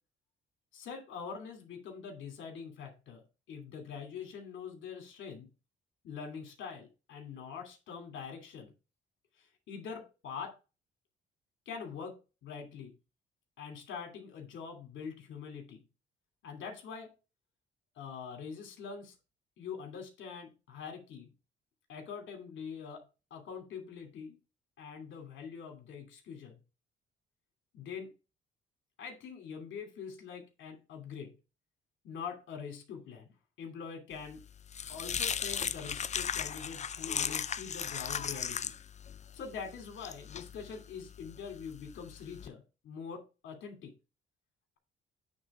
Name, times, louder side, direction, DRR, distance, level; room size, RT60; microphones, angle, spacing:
voice 1, 0.7-5.5 6.0-8.7 9.4-10.5 11.7-12.1 12.4-12.9 13.6-15.8 16.4-17.1 17.9-19.1 19.6-21.3 21.9-23.0 23.3-24.4 24.8-26.6 27.7-28.1 29.0-31.3 32.0-33.3 33.6-34.4 34.9-38.7 39.3-43.9, left 6 dB, 75° left, 4 dB, 2.7 m, -44 dB
sound 1, 34.2-42.5, left 7 dB, 35° left, 0.5 m, -37 dB
8.7 x 4.0 x 4.8 m, 0.30 s
cardioid pair, 90°, 20 cm